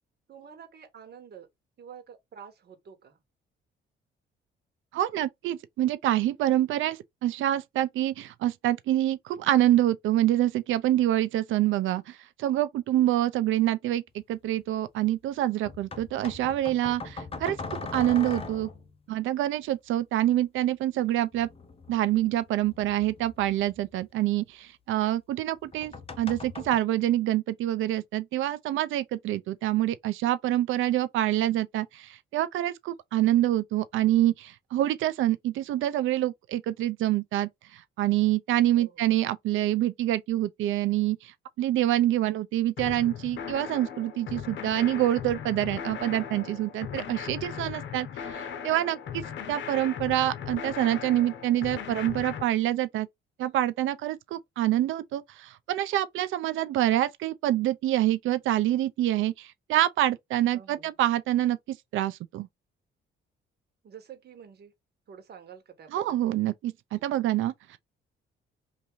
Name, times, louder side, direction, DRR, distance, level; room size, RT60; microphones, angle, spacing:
voice 1, 0.3-1.5 1.8-3.2 38.7-39.0 60.5-60.9 63.8-64.7 65.1-66.0 66.3-66.4, right 7 dB, 55° right, 1.3 m, -48 dB
voice 2, 4.9-14.0 14.3-17.6 17.9-18.7 19.1-21.5 21.9-49.2 49.5-53.1 53.4-62.5 65.9-67.8, right 13 dB, 80° right, 0.5 m, -26 dB
sound 1, 14.2-14.3 15.6-19.0 21.3-24.0 25.6-26.8, left 3 dB, 30° left, 0.6 m, -40 dB
sound 2, 42.8-52.4, left 8 dB, 70° left, 0.8 m, -38 dB
3.5 x 2.6 x 3.1 m
cardioid pair, 90°, 20 cm